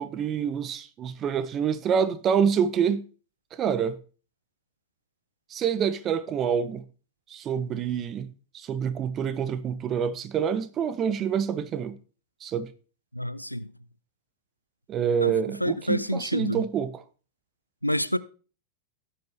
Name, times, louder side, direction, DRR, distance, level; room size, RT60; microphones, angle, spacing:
voice 1, 0.0-3.1 3.5-4.0 5.5-6.8 7.3-12.0 12.4-12.7 14.9-17.0, right 7 dB, 30° right, 0.7 m, -27 dB
voice 2, 13.1-13.7 15.2-16.6 17.8-18.2, equal, 90° left, 0.4 m, -28 dB
17.0 x 5.8 x 3.2 m
figure-of-eight pair, 90°, 0 cm